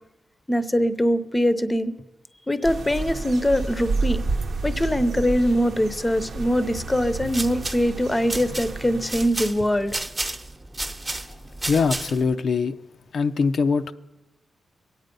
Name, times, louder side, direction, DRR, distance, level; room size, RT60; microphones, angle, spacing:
voice 1, 0.5-1.9 2.5-4.2 4.6-9.9, equal, 15° left, 0.7 m, -22 dB
sound 1, 2.6-9.3, right 3 dB, 55° right, 0.8 m, -30 dB
sound 2, 7.2-12.3, right 2 dB, 20° right, 0.9 m, -32 dB
voice 2, 11.0-11.4 11.7-12.8 13.1-13.9, left 5 dB, 65° left, 0.5 m, -23 dB
23.5 x 8.9 x 5.3 m
wide cardioid pair, 130°, 0 cm